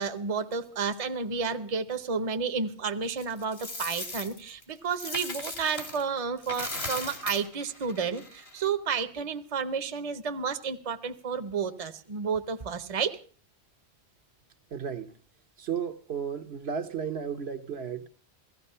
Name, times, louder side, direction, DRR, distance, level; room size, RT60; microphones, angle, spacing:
voice 1, 0.0-13.2, right 5 dB, 35° right, 0.8 m, -31 dB
Coin (dropping), 3.2-6.0 6.4-8.6, left 2 dB, 65° left, 3.0 m, -38 dB
voice 2, 14.7-15.1 15.6-18.1, right 7 dB, 70° right, 1.2 m, -34 dB
16.5 x 14.5 x 5.4 m
omnidirectional pair, 1.1 m